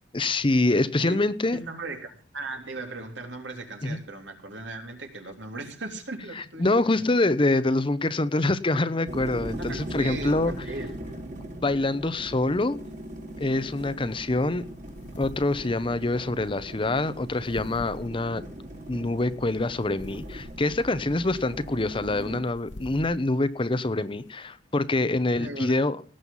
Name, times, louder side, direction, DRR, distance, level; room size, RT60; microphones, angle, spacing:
voice 1, 0.1-1.6 3.8-4.0 6.4-10.5 11.6-12.8 13.4-14.6 15.2-18.5 18.9-26.0, left 2 dB, 30° left, 0.8 m, -25 dB
voice 2, 1.5-7.1 9.7-11.2 25.4-25.8, right 2 dB, 75° right, 3.3 m, -38 dB
sound 1, 9.1-22.4, right 1 dB, 45° right, 3.0 m, -39 dB
sound 2, 13.7-24.3, left 1 dB, 80° left, 1.2 m, -48 dB
18.5 x 7.8 x 5.6 m
head